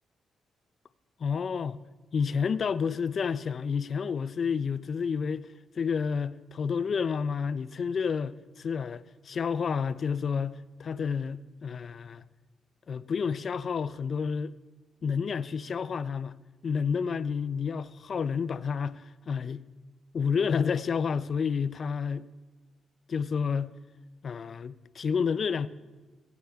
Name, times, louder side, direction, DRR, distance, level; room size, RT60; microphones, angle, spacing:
voice 1, 1.2-1.8 2.1-5.5 5.7-12.2 12.9-14.5 15.0-16.4 16.6-19.6 20.1-22.3 23.1-23.7 24.2-25.7, left 6 dB, 55° left, 0.4 m, -30 dB
16.0 x 9.2 x 3.5 m
cardioid pair, 80°, 0 cm